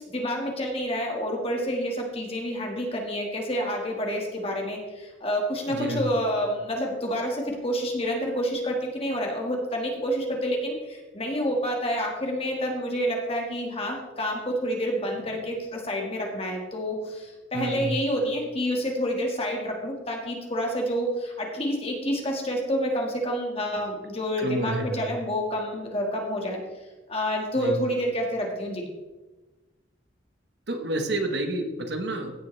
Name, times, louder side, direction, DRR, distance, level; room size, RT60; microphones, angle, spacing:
voice 1, 0.1-26.6 27.1-28.9, equal, 30° left, 0 dB, 1.8 m, -28 dB
voice 2, 5.7-6.0 17.5-18.0 24.4-25.1 27.6-27.8 30.7-32.3, right 1 dB, 60° right, 5 dB, 1.2 m, -29 dB
16.0 x 6.9 x 3.3 m, 1.2 s
head